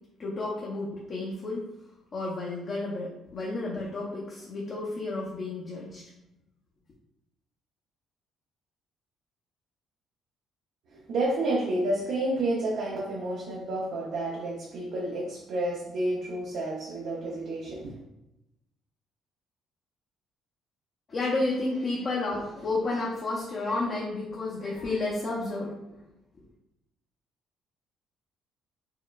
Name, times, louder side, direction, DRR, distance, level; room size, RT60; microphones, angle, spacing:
voice 1, 0.2-1.6 2.1-6.0 21.1-25.7, left 2 dB, 40° left, -4 dB, 0.7 m, -31 dB
voice 2, 10.9-17.9, right 1 dB, 70° right, -3 dB, 0.6 m, -30 dB
4.6 x 2.1 x 2.3 m, 0.90 s
cardioid pair, 110°, 0 cm